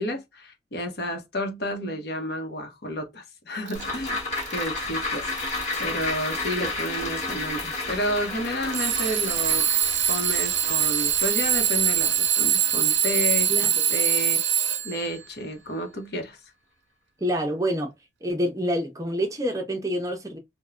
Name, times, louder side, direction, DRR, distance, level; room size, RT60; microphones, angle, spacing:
voice 1, 0.0-4.2 4.5-5.3 5.8-9.6 10.1-14.4 14.8-16.4, equal, 60° left, 0.8 m, -31 dB
sound 1, 3.7-14.3 14.6-14.7, left 2 dB, 40° left, 1.1 m, -32 dB
Alarm / Clock, 3.7-3.8 4.4-4.8 5.4-5.8 6.7-6.8 8.7-15.1, right 9 dB, 85° right, 0.4 m, -23 dB
voice 2, 13.5-13.9 17.2-17.9 18.2-20.4, equal, 20° right, 0.6 m, -27 dB
3.2 x 2.2 x 2.4 m
head